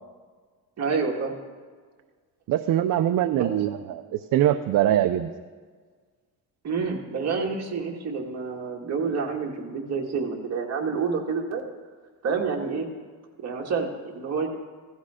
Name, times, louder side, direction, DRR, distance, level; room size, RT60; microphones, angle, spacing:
voice 1, 0.8-1.4 3.3-3.6 6.6-11.6 12.2-12.9 13.4-14.5, right 5 dB, 40° right, 0 dB, 2.0 m, -28 dB
voice 2, 2.5-5.3, right 12 dB, 60° right, 9 dB, 0.6 m, -23 dB
16.0 x 12.0 x 5.0 m, 1.6 s
cardioid pair, 150°, 38 cm